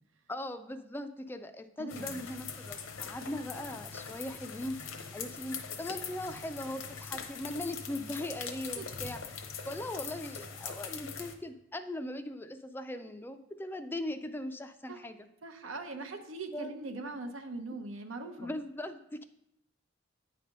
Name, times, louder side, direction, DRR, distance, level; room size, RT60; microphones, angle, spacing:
voice 1, 0.3-9.2 9.6-15.2 16.5-16.8 18.4-19.2, left 1 dB, 10° left, 9 dB, 0.3 m, -39 dB
voice 2, 1.8-2.2 8.7-8.9 14.9-15.0 15.4-18.5, right 3 dB, 85° right, 6 dB, 0.8 m, -41 dB
sound 1, 1.9-11.3, left 6 dB, 80° left, 0.8 m, -42 dB
9.1 x 3.4 x 5.3 m, 0.79 s
head